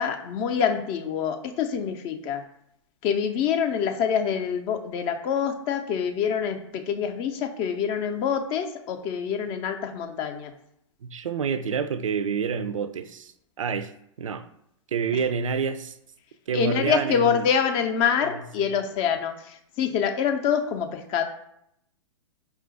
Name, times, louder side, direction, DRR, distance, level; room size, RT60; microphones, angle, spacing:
voice 1, 0.0-2.4 3.0-10.5 16.5-21.2, left 7 dB, 35° left, 0.5 m, -26 dB
voice 2, 11.0-13.3 13.6-13.9 14.2-14.5 14.9-16.0 16.5-17.5 18.2-18.8, right 6 dB, 85° right, 0.4 m, -28 dB
4.7 x 2.4 x 3.8 m
hypercardioid pair, 120°, 16 cm